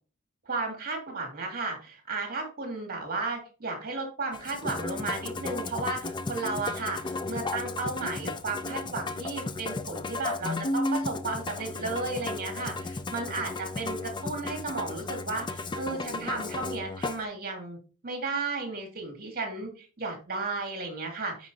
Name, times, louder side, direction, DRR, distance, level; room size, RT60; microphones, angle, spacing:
voice 1, 0.5-7.0 7.3-17.8 18.0-21.5, right 3 dB, 45° right, 2 dB, 2.4 m, -34 dB
Musical instrument, 4.3-17.2, left 2 dB, 20° left, 0.4 m, -34 dB
9.6 x 6.0 x 2.8 m, 0.37 s
head